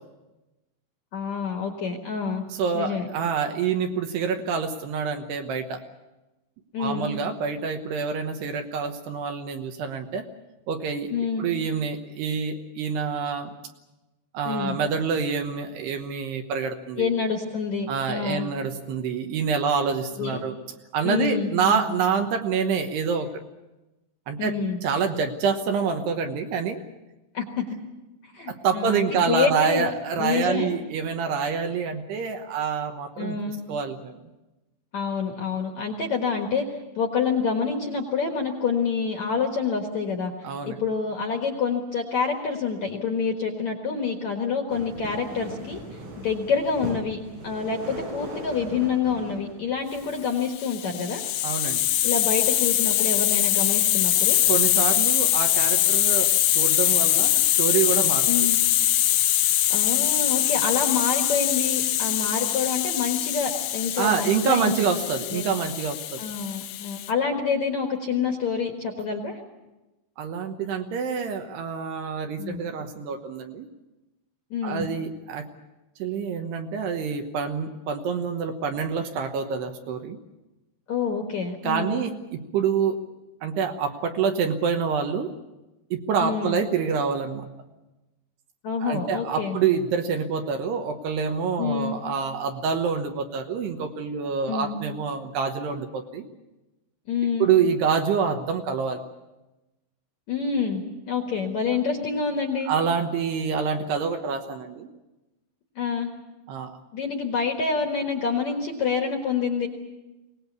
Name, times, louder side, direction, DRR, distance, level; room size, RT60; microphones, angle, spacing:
voice 1, 1.1-2.5 2.7-3.1 6.7-7.2 11.1-11.4 14.4-14.8 17.0-18.5 20.2-20.4 21.0-21.9 24.4-24.8 27.3-27.6 28.2-30.7 33.2-33.6 34.9-36.6 37.0-40.3 40.7-45.8 46.2-51.2 52.0-54.4 58.3-58.6 59.7-64.8 65.3-65.5 66.2-69.4 72.4-72.6 74.5-74.9 80.9-82.0 86.2-86.6 88.6-89.6 91.6-92.0 94.5-94.8 97.1-97.5 100.3-102.7 105.8-106.1 106.9-109.7, left 5 dB, 60° left, 2 dB, 2.0 m, -27 dB
voice 2, 2.5-5.8 6.8-10.2 10.7-11.1 11.4-13.5 14.3-17.1 17.9-20.6 20.9-23.3 24.3-24.5 24.8-26.8 28.5-34.2 40.4-40.8 51.4-51.9 54.5-58.5 64.0-66.2 70.2-73.7 74.6-75.5 76.0-80.2 81.6-83.0 83.4-85.3 85.9-87.5 88.8-96.2 97.4-99.0 102.6-104.9 106.5-106.7, right 6 dB, 70° right, 5 dB, 2.9 m, -27 dB
sound 1, 44.7-50.4, right 1 dB, 90° right, 9.1 m, -39 dB
Hiss, 50.5-67.1, left 13 dB, 75° left, 2.6 m, -23 dB
23.0 x 19.0 x 8.2 m, 1.1 s
omnidirectional pair, 5.5 m